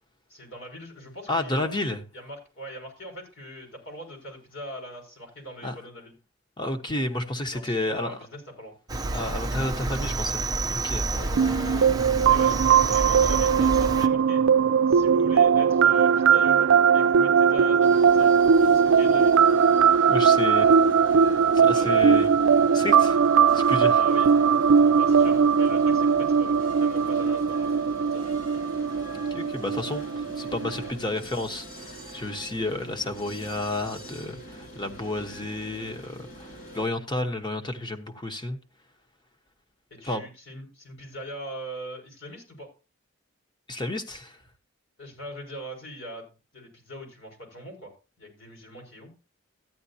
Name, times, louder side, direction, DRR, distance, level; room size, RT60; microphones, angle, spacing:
voice 1, 0.3-6.1 7.5-8.7 11.1-14.4 14.9-19.4 20.4-20.9 21.7-22.4 24.0-24.3 24.9-28.4 30.8-31.2 35.1-35.5 39.9-42.7 45.0-47.9 48.2-49.1, equal, 70° left, 6.0 m, -41 dB
voice 2, 1.3-2.0 5.6-5.7 6.6-8.2 9.1-11.0 20.1-20.6 21.5-22.3 22.7-23.2 23.5-24.0 29.3-38.6 40.0-40.2 43.7-44.4, left 2 dB, 20° left, 1.2 m, -31 dB
Cricket, 8.9-14.1, right 2 dB, 20° right, 0.6 m, -29 dB
sound 1, 11.4-30.9, right 6 dB, 75° right, 0.4 m, -20 dB
sound 2, 17.8-36.9, right 1 dB, 50° left, 4.2 m, -44 dB
14.0 x 10.5 x 2.8 m
head